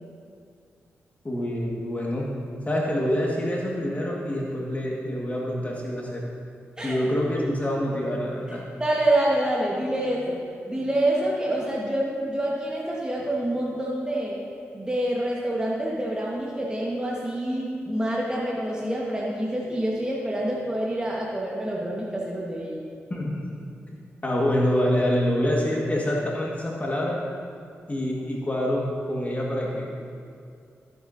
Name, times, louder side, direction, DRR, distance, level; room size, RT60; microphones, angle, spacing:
voice 1, 1.2-2.3 2.7-6.2 6.8-8.6 23.1-23.5 23.9-27.2 27.9-30.0, equal, 30° left, -3 dB, 1.8 m, -26 dB
voice 2, 8.8-14.4 14.7-22.8, right 1 dB, 15° right, -4 dB, 1.5 m, -27 dB
13.5 x 8.0 x 2.8 m, 2.4 s
supercardioid pair, 45°, 5 cm